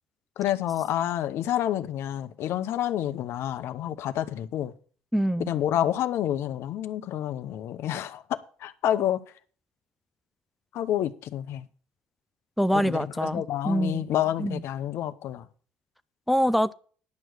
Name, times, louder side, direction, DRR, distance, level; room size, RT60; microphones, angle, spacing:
voice 1, 0.4-4.7 5.5-9.2 10.7-11.7 12.7-15.5, left 11 dB, 65° left, 0.8 m, -29 dB
voice 2, 5.1-5.5 12.6-14.0 14.4-14.6 16.3-16.7, equal, ahead, 0.4 m, -25 dB
11.0 x 6.3 x 6.1 m
hypercardioid pair, 60°, 5 cm